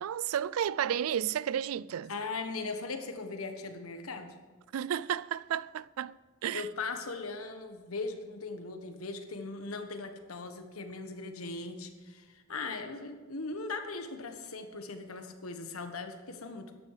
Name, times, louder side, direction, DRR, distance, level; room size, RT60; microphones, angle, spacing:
voice 1, 0.0-2.1 4.7-6.1 6.4-6.7, right 9 dB, 80° right, 0.3 m, -32 dB
voice 2, 2.1-4.3 6.5-16.8, left 3 dB, 90° left, 1.4 m, -39 dB
13.5 x 10.0 x 5.0 m
head